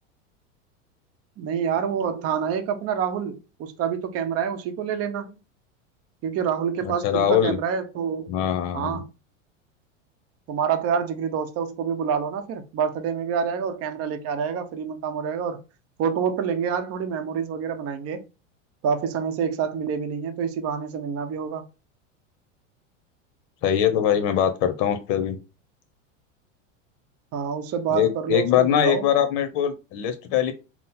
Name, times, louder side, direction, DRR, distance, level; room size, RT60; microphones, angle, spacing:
voice 1, 1.4-5.4 6.2-8.3 8.7-9.1 10.5-15.6 16.0-18.2 18.8-21.6 27.3-29.1, right 7 dB, 40° right, 0.8 m, -27 dB
voice 2, 6.8-7.6 8.3-9.0 23.6-25.4 27.9-30.5, left 9 dB, 50° left, 0.9 m, -22 dB
3.8 x 2.1 x 4.2 m
hypercardioid pair, 110°, 38 cm